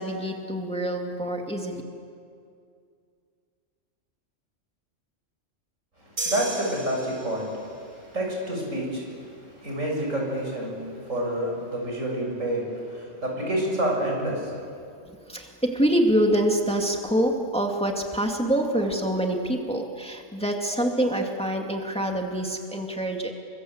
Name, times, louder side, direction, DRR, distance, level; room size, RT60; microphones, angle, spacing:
voice 1, 0.0-1.8 15.1-23.3, right 1 dB, 5° left, 2 dB, 2.4 m, -26 dB
voice 2, 6.0-14.6 18.7-19.0, right 1 dB, 85° right, 0 dB, 6.9 m, -29 dB
sound 1, 6.2-7.7, right 2 dB, 60° right, 4.9 m, -34 dB
28.5 x 25.0 x 8.1 m, 2.3 s
omnidirectional pair, 1.3 m